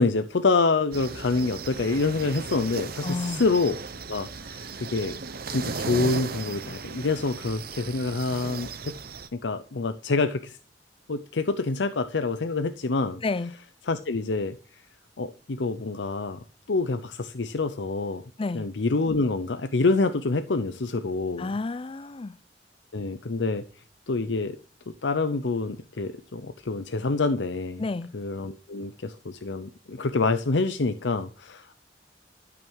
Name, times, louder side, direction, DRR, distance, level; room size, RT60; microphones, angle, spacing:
voice 1, 0.0-3.8 4.0-5.2 5.5-8.9 9.4-10.6 11.1-13.2 13.9-14.6 15.2-16.4 16.7-18.2 18.5-21.5 22.9-23.6 24.1-24.6 24.9-27.8 28.1-31.7, left 3 dB, 80° left, 0.7 m, -27 dB
sound 1, 0.9-9.3, right 4 dB, 55° right, 0.9 m, -36 dB
voice 2, 3.0-3.4 13.2-13.5 18.4-18.7 21.4-22.4 27.8-28.1, left 3 dB, 30° left, 0.5 m, -30 dB
12.5 x 6.0 x 6.3 m
head